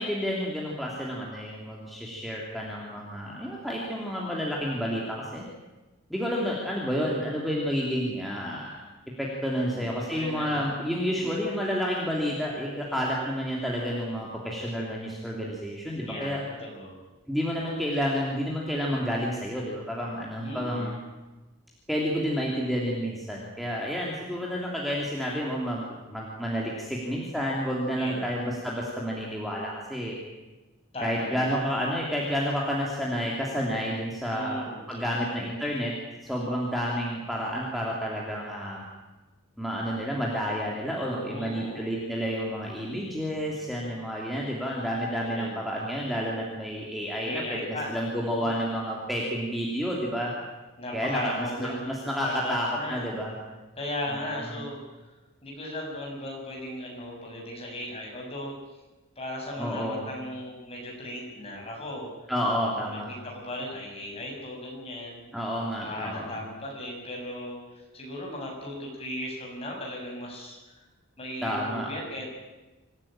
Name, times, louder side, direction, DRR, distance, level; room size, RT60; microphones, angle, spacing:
voice 1, 0.0-5.4 6.1-8.8 9.2-16.4 17.3-21.0 21.9-30.2 31.0-35.9 36.2-38.8 39.6-50.3 50.9-53.3 54.1-54.6 59.6-60.0 62.3-63.1 65.3-66.3 71.4-71.9, equal, ahead, -4 dB, 3.1 m, -30 dB
voice 2, 9.5-10.6 10.9-11.2 16.1-17.0 20.4-20.9 28.0-28.4 30.9-31.6 34.3-35.3 41.3-41.9 45.2-45.6 47.2-48.5 50.8-51.9 52.2-53.2 53.8-55.1 55.4-58.5 59.1-62.1 63.1-65.4 65.8-70.6 71.2-72.3, left 1 dB, 25° left, -1 dB, 6.9 m, -37 dB
26.0 x 16.0 x 9.0 m, 1.1 s
head